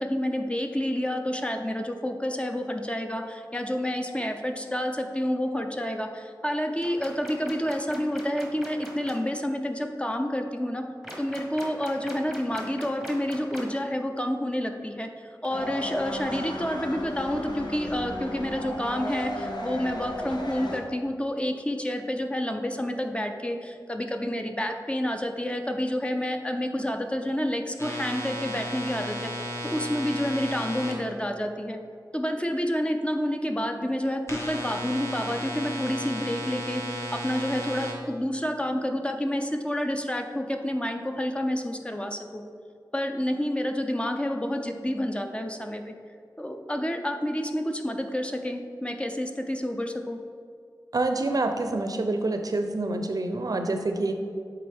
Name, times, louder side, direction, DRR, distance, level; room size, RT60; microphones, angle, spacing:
voice 1, 0.0-10.8 11.2-31.8 32.1-42.4 42.9-45.9 46.4-50.2, equal, 15° left, 4 dB, 0.4 m, -29 dB
sound 1, 6.8-9.1 11.0-13.8, equal, ahead, 1.1 m, -41 dB
sound 2, 15.5-20.8, left 1 dB, 75° left, 0.7 m, -35 dB
sound 3, 27.8-30.9 34.3-37.9, equal, 40° left, 1.1 m, -34 dB
voice 2, 50.9-54.1, right 2 dB, 55° right, 5 dB, 0.5 m, -27 dB
8.3 x 3.5 x 3.4 m, 2.2 s
wide cardioid pair, 65°, 8 cm